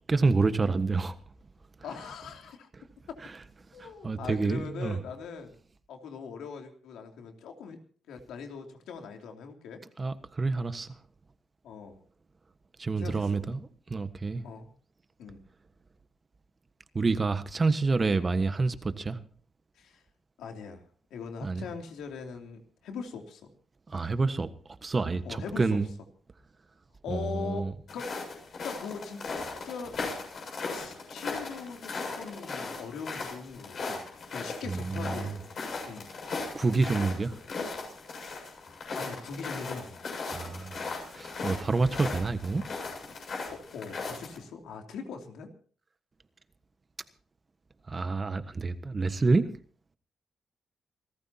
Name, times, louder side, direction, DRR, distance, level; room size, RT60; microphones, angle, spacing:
voice 1, 0.1-1.2 3.2-3.3 3.8-5.0 10.0-10.9 12.8-14.4 16.9-19.2 21.4-21.7 23.9-24.5 24.8-25.9 27.1-27.7 34.7-35.4 36.5-37.4 40.3-40.9 41.1-42.7 47.9-49.5, right 3 dB, 30° right, 1.4 m, -28 dB
voice 2, 1.8-2.7 3.1-3.2 3.7-5.6 5.9-7.8 8.1-9.8 11.6-12.0 13.0-13.4 14.4-14.7 15.2-15.4 19.8-20.0 20.4-20.8 21.1-23.5 25.2-25.8 27.0-28.1 28.5-29.2 29.6-30.0 30.7-34.0 34.3-35.4 35.8-36.1 38.9-40.1 43.5-45.5, left 5 dB, 90° left, 3.0 m, -41 dB
sound 1, 27.9-44.4, left 4 dB, 60° left, 7.2 m, -38 dB
28.0 x 14.0 x 2.9 m
cardioid pair, 85°, 0 cm